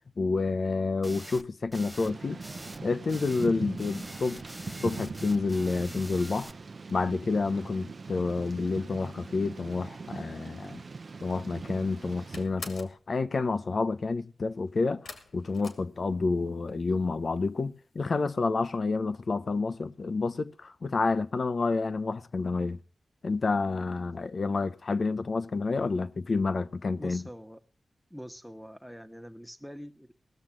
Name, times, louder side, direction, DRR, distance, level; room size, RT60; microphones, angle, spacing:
voice 1, 0.2-2.4 2.8-4.4 4.8-6.5 6.9-10.8 11.2-22.8 23.2-27.2, left 3 dB, 60° left, 0.7 m, -29 dB
sound 1, 1.0-1.4 1.7-2.1 2.4-2.8 3.1-3.5 3.8-6.5, right 1 dB, 15° right, 0.6 m, -44 dB
Thunder / Rain, 2.0-12.5, right 4 dB, 60° right, 0.6 m, -41 dB
sound 2, 11.3-11.7 12.0-13.0 15.0-16.5 16.8-17.4 17.7-17.8 18.2-18.3, left 3 dB, 80° left, 2.3 m, -45 dB
voice 2, 26.9-27.6 28.1-30.1, equal, ahead, 1.1 m, -44 dB
18.0 x 6.5 x 7.3 m
cardioid pair, 50°, 0 cm